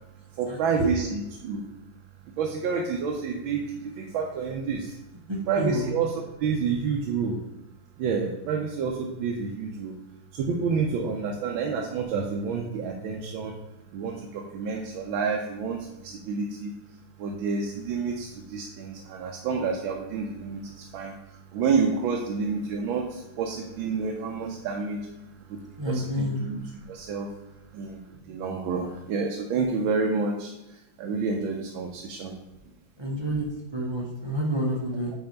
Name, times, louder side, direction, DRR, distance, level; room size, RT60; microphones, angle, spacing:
voice 1, 0.3-1.7 2.4-5.0 5.5-7.4 8.0-10.0 10.3-13.6 13.9-16.7 17.2-25.1 25.5-27.3 27.7-32.3, right 5 dB, 80° right, 1 dB, 1.5 m, -29 dB
voice 2, 5.3-5.9 25.8-26.4 33.0-33.5 33.7-35.1, equal, 40° right, -3 dB, 0.3 m, -29 dB
5.6 x 4.5 x 5.2 m, 0.94 s
omnidirectional pair, 2.2 m